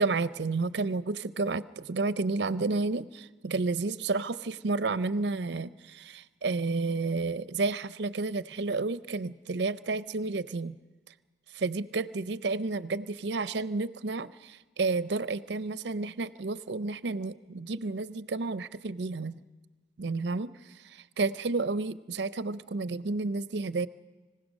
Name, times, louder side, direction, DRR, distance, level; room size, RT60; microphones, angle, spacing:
voice 1, 0.0-10.8 11.1-11.2 11.5-19.3 20.0-23.9, right 3 dB, 65° right, 16 dB, 0.6 m, -31 dB
26.0 x 16.0 x 6.3 m, 1.3 s
head